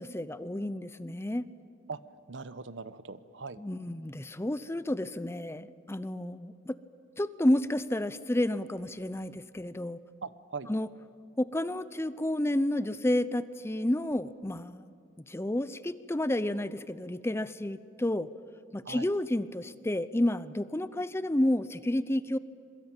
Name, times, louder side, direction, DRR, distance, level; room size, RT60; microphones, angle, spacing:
voice 1, 0.0-1.5 3.6-6.8 7.2-10.0 10.7-10.9 11.4-14.9 15.3-18.3 18.7-22.4, left 1 dB, 15° left, 15 dB, 0.6 m, -30 dB
voice 2, 2.3-3.6 10.2-10.7 18.8-19.1, right 4 dB, 70° right, 14 dB, 1.0 m, -40 dB
27.0 x 22.5 x 9.0 m, 2.3 s
head